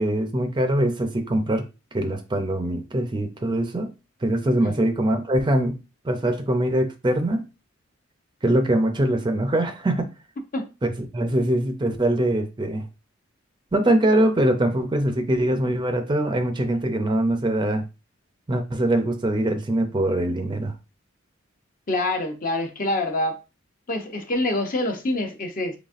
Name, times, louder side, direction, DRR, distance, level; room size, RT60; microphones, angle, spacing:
voice 1, 0.0-3.9 4.2-5.8 6.0-7.5 8.4-10.1 10.8-12.8 13.7-17.8 18.5-20.7, right 1 dB, 25° right, 0.5 m, -23 dB
voice 2, 21.9-23.4 23.9-25.8, left 2 dB, 40° left, 0.7 m, -26 dB
4.0 x 3.3 x 2.4 m
head